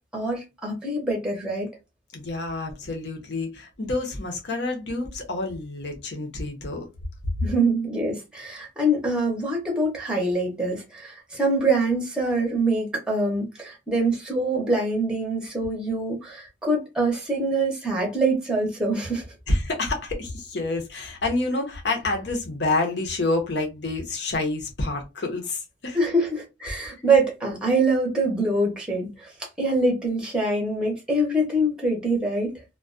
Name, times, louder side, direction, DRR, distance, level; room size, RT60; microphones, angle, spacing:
voice 1, 0.1-1.7 7.4-19.2 25.9-29.3 29.6-32.5, right 2 dB, 5° right, 0.7 m, -24 dB
voice 2, 2.1-6.9 19.5-26.0, left 2 dB, 60° left, 0.7 m, -28 dB
2.2 x 2.2 x 2.5 m
head